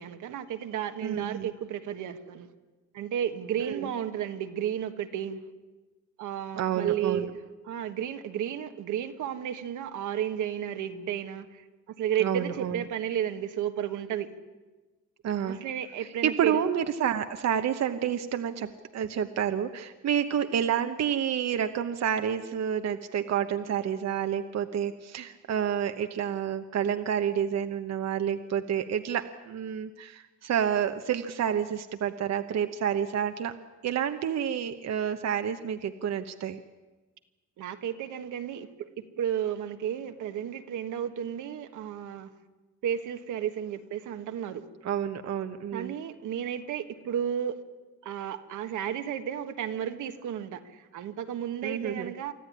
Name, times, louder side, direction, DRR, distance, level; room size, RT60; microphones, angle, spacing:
voice 1, 0.0-2.5 2.9-5.4 6.2-7.3 7.6-14.3 15.5-16.6 37.6-38.9 39.2-42.3 42.8-44.6 45.7-47.6 48.0-52.3, right 9 dB, 80° right, 7 dB, 1.5 m, -33 dB
voice 2, 1.0-1.5 3.6-3.9 6.5-7.3 12.2-12.8 15.2-15.6 16.2-33.5 33.8-36.6 44.8-45.9 51.6-52.1, right 9 dB, 60° right, 7 dB, 1.1 m, -29 dB
25.0 x 14.0 x 9.8 m, 1.2 s
cardioid pair, 90°, 30 cm